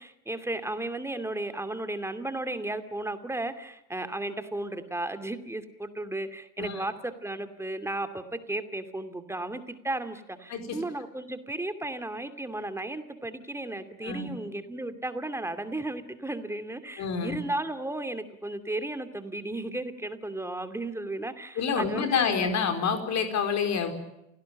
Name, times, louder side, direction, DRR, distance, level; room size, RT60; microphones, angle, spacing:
voice 1, 0.0-22.5, right 2 dB, 5° right, 9 dB, 2.6 m, -34 dB
voice 2, 17.0-17.4 21.6-23.9, left 6 dB, 40° left, 7 dB, 4.6 m, -28 dB
29.5 x 18.0 x 8.9 m, 0.88 s
figure-of-eight pair, 70°, 42 cm